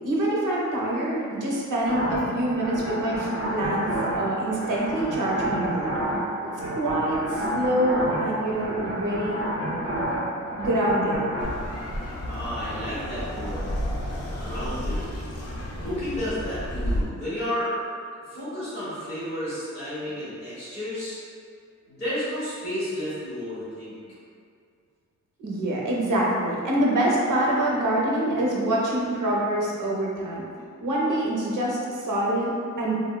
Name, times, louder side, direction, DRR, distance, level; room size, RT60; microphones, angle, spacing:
voice 1, 0.0-3.9 4.2-5.9 6.7-9.4 10.6-11.2 25.4-30.4 30.8-32.9, right 1 dB, 80° right, -4 dB, 0.6 m, -25 dB
sound 1, 1.8-11.4, right 1 dB, 50° right, 0.9 m, -30 dB
sound 2, 11.4-17.0, equal, 50° left, 0.5 m, -31 dB
voice 2, 12.2-13.7 14.4-15.1 15.8-17.7 18.2-21.2 21.8-24.0, left 1 dB, 35° left, -14 dB, 1.1 m, -32 dB
3.4 x 2.1 x 2.2 m, 2.2 s
wide cardioid pair, 170°, 31 cm